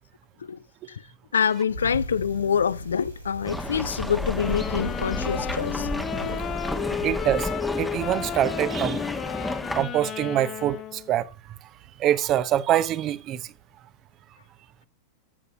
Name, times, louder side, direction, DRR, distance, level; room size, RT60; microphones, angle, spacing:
voice 1, 0.4-1.1 1.3-5.9 6.1-6.3 6.9-7.0, left 7 dB, 70° left, 0.4 m, -26 dB
Bicycle, 1.7-7.1, equal, 85° right, 3.1 m, -38 dB
sound 1, 3.4-9.8, left 1 dB, ahead, 1.2 m, -31 dB
sound 2, 4.3-11.1, left 10 dB, 30° left, 0.7 m, -33 dB
voice 2, 7.0-7.5 7.8-9.0 9.8-11.3 12.0-13.4, right 12 dB, 35° right, 0.9 m, -24 dB
13.5 x 8.3 x 3.9 m
figure-of-eight pair, 90°, 0 cm